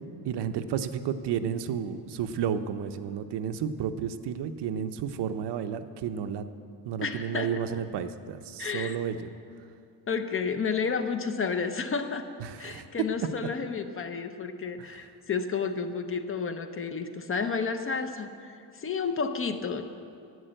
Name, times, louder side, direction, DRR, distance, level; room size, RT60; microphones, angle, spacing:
voice 1, 0.2-6.5 6.8-9.2 12.4-12.9 14.8-14.9, right 8 dB, 70° right, 9 dB, 0.7 m, -32 dB
voice 2, 7.0-7.8 8.6-9.0 10.1-12.3 12.6-19.8, left 5 dB, 30° left, 8 dB, 0.6 m, -31 dB
11.0 x 8.5 x 8.9 m, 2.4 s
cardioid pair, 180°, 42 cm